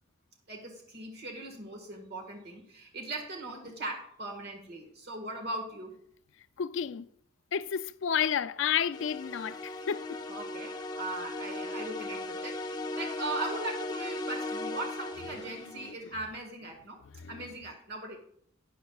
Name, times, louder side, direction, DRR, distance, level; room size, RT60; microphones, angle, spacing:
voice 1, 0.5-6.0 10.3-17.0 17.3-18.2, right 2 dB, 55° right, 1.6 m, -39 dB
voice 2, 6.6-7.1 7.5-10.2 17.2-17.3, left 8 dB, 65° left, 0.4 m, -31 dB
sound 1, 8.9-15.9, left 2 dB, 20° left, 0.6 m, -37 dB
12.5 x 9.7 x 2.3 m
head